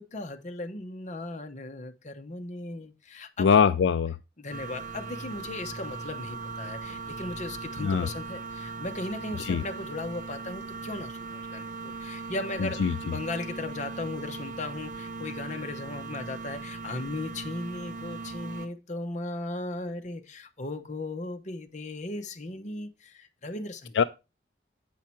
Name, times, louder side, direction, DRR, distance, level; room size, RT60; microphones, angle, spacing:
voice 1, 0.0-3.5 4.4-24.0, left 2 dB, 40° left, 0.9 m, -37 dB
voice 2, 3.4-4.2 7.8-8.1 9.5-9.6 12.8-12.9 24.0-24.1, left 6 dB, 80° left, 0.4 m, -22 dB
sound 1, 4.5-18.7, right 4 dB, 45° right, 0.8 m, -39 dB
8.5 x 5.7 x 4.4 m
head